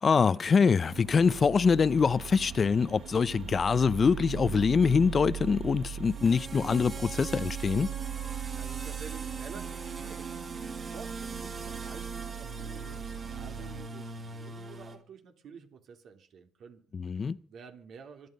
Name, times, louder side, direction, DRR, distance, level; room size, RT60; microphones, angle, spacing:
voice 1, 0.0-7.9 16.9-17.4, left 5 dB, 40° left, 0.6 m, -24 dB
sound 1, 0.9-13.8, right 9 dB, 90° right, 1.6 m, -40 dB
sound 2, 1.9-15.0, right 3 dB, 40° right, 3.5 m, -43 dB
voice 2, 8.5-18.3, right 6 dB, 65° right, 3.3 m, -50 dB
25.0 x 9.6 x 5.3 m
cardioid pair, 90°, 0 cm